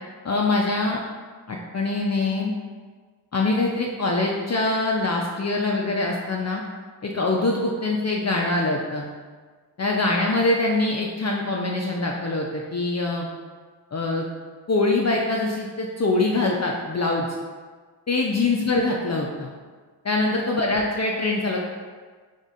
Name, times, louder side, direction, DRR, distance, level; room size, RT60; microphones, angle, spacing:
voice 1, 0.2-1.0 1.5-2.5 3.3-6.6 7.0-9.1 9.8-13.3 13.9-14.3 14.7-17.3 18.1-19.5 20.0-21.6, left 2 dB, 40° left, -1 dB, 0.5 m, -24 dB
3.7 x 3.5 x 4.1 m, 1.5 s
wide cardioid pair, 60°, 43 cm